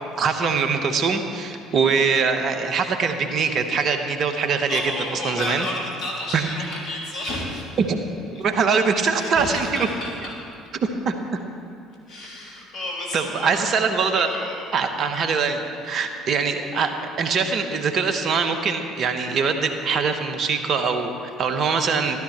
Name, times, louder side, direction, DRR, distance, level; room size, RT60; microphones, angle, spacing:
voice 1, 0.2-4.8 5.2-5.6 6.3-6.4 7.8-8.0 8.4-9.9 10.8-11.1 13.1-14.3 14.7-22.2, right 5 dB, 50° right, 7 dB, 1.1 m, -23 dB
voice 2, 4.7-7.7 8.3-8.5 9.1-10.3 12.1-13.5 14.1-14.6 15.8-16.1, left 1 dB, 55° left, -3 dB, 3.4 m, -31 dB
13.0 x 13.0 x 4.4 m, 2.7 s
hypercardioid pair, 60°, 0 cm